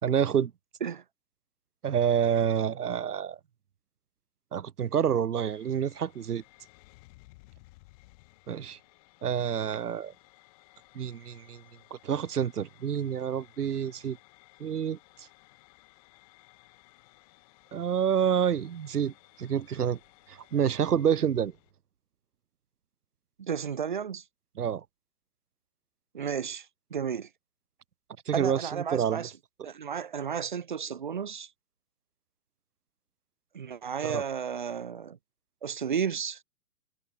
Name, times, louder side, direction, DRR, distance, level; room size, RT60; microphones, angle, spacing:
voice 1, 0.0-0.5 1.8-3.4 4.5-6.4 8.5-8.8 9.2-10.1 10.9-11.6 12.0-14.2 14.6-15.0 17.7-19.1 19.4-20.0 20.3-21.5 24.6-24.8 28.3-29.3 34.0-34.2, right 8 dB, 65° right, 2.9 m, -28 dB
sound 1, 5.4-21.7, left 23 dB, 20° left, 6.0 m, -59 dB
voice 2, 23.4-24.2 26.1-26.7 26.9-27.3 28.3-29.3 29.6-31.5 33.5-35.2 35.6-36.4, right 7 dB, 30° right, 0.8 m, -33 dB
hypercardioid pair, 180°, 50 cm